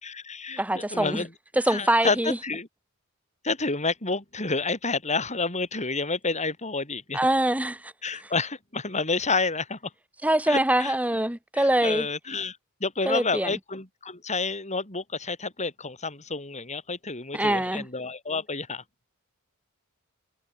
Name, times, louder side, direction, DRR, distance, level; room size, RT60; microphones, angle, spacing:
voice 1, 0.0-1.3 1.7-2.7 3.4-7.2 8.0-9.9 10.5-10.9 11.6-18.8, left 3 dB, 30° left, 7.2 m, -29 dB
voice 2, 0.6-1.2 1.6-2.4 7.1-7.9 10.2-12.1 13.1-13.6 17.3-17.9, right 1 dB, 5° right, 2.0 m, -24 dB
head